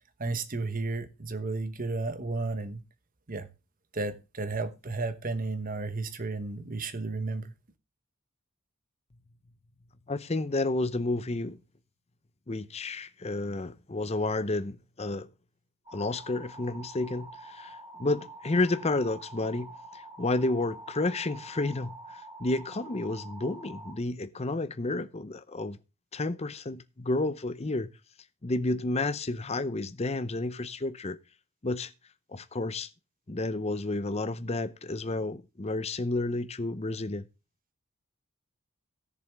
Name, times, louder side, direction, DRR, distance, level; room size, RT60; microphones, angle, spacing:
voice 1, 0.2-2.8 3.3-3.5 3.9-7.5, right 3 dB, 40° right, 1.0 m, -33 dB
voice 2, 10.1-11.6 12.5-15.3 15.9-25.8 26.1-27.9 28.4-31.2 31.6-31.9 32.3-32.9 33.3-37.3, left 2 dB, 30° left, 0.6 m, -31 dB
sound 1, 15.9-24.0, right 2 dB, 20° right, 3.4 m, -47 dB
16.0 x 7.0 x 3.4 m
head